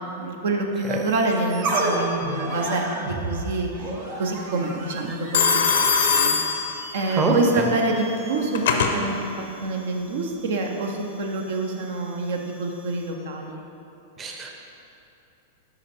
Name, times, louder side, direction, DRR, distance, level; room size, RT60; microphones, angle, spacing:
voice 1, 0.0-3.9 4.2-6.4 6.9-9.2 9.6-13.6, right 2 dB, 70° right, 2 dB, 0.6 m, -26 dB
sound 1, 0.7-13.2, right 2 dB, 50° right, 1.4 m, -34 dB
Telephone, 1.7-2.3 5.3-7.2 8.2-9.0, left 5 dB, 70° left, 0.6 m, -22 dB
voice 2, 14.2-14.5, right 4 dB, 25° right, 1 dB, 0.7 m, -24 dB
5.0 x 4.9 x 4.3 m, 2.9 s
hypercardioid pair, 110°, 0 cm